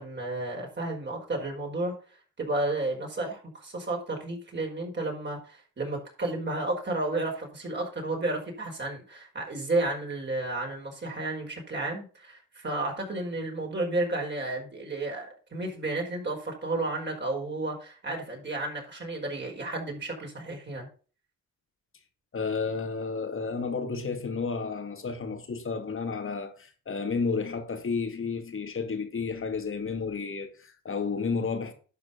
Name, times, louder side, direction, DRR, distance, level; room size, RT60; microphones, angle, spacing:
voice 1, 0.0-1.9 2.4-20.9, right 2 dB, 30° right, 5.0 m, -32 dB
voice 2, 22.3-31.7, left 5 dB, 40° left, 2.4 m, -31 dB
11.5 x 4.8 x 5.4 m
supercardioid pair, 75°, 33 cm